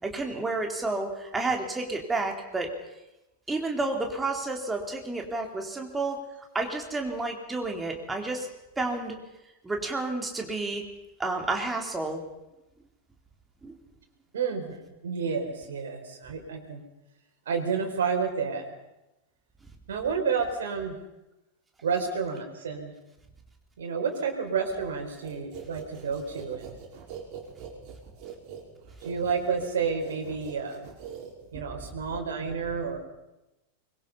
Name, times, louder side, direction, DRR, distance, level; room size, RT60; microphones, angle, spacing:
voice 1, 0.0-2.7 3.5-6.2 6.5-8.5 8.8-9.2 9.6-10.8 11.2-12.2 13.6-13.8 31.5-31.6, right 2 dB, 10° right, 2 dB, 4.0 m, -30 dB
voice 2, 14.3-16.8 17.5-18.6 19.9-21.0 21.8-23.0 23.8-26.8 29.0-30.9 31.5-33.0, right 5 dB, 65° right, 4 dB, 4.5 m, -30 dB
sound 1, 25.2-31.7, right 7 dB, 40° right, 6.1 m, -43 dB
24.0 x 23.0 x 5.7 m, 0.95 s
figure-of-eight pair, 90°, 0 cm